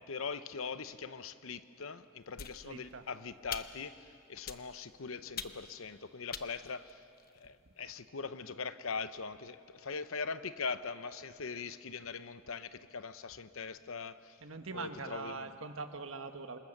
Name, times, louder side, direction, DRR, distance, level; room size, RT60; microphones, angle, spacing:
voice 1, 0.1-7.0 7.3-14.4 14.7-15.6, left 5 dB, 80° left, 0.8 m, -41 dB
sound 1, 2.4-3.0 3.5-4.0 4.5-4.9 5.4-5.8 6.3-7.5, left 7 dB, 45° left, 0.9 m, -45 dB
voice 2, 2.6-3.0 14.4-16.6, right 4 dB, 75° right, 1.4 m, -42 dB
27.0 x 21.5 x 6.6 m
head